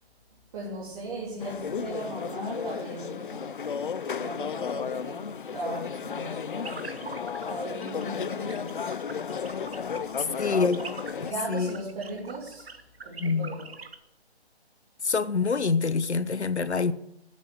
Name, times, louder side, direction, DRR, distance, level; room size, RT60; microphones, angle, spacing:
voice 1, 0.5-3.5 4.0-8.9 10.1-10.6 11.2-13.7, right 2 dB, 35° right, 3.1 m, -38 dB
sound 1, 1.4-11.3, left 6 dB, 50° left, 0.6 m, -34 dB
sound 2, 6.6-7.5 7.8-8.0 8.3-14.0, right 5 dB, 65° right, 1.6 m, -43 dB
voice 2, 10.2-10.8 11.2-11.8 13.2-13.6 15.0-16.9, left 4 dB, 80° left, 1.0 m, -26 dB
11.5 x 8.4 x 8.1 m
figure-of-eight pair, 145°, 33 cm